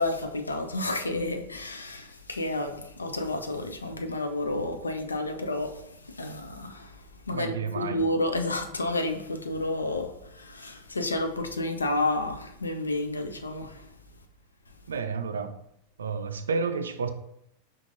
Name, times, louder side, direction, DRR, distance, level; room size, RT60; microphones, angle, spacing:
voice 1, 0.0-13.9, left 2 dB, 75° left, 0.4 m, -31 dB
voice 2, 7.3-8.0 14.9-15.5 16.0-17.1, right 5 dB, 70° right, 0.4 m, -30 dB
5.7 x 2.5 x 2.6 m
figure-of-eight pair, 90°, 0 cm